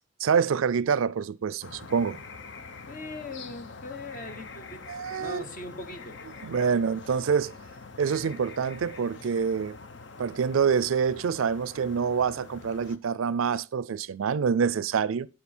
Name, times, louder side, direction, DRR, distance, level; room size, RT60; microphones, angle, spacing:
voice 1, 0.2-2.2 4.9-5.4 6.4-7.5 8.0-9.8 10.2-15.3, right 6 dB, 80° right, 0.4 m, -26 dB
sound 1, 1.6-13.0, left 4 dB, 60° left, 0.8 m, -45 dB
voice 2, 2.9-4.8 5.2-6.2, left 2 dB, 40° left, 1.3 m, -40 dB
11.5 x 7.6 x 4.3 m
head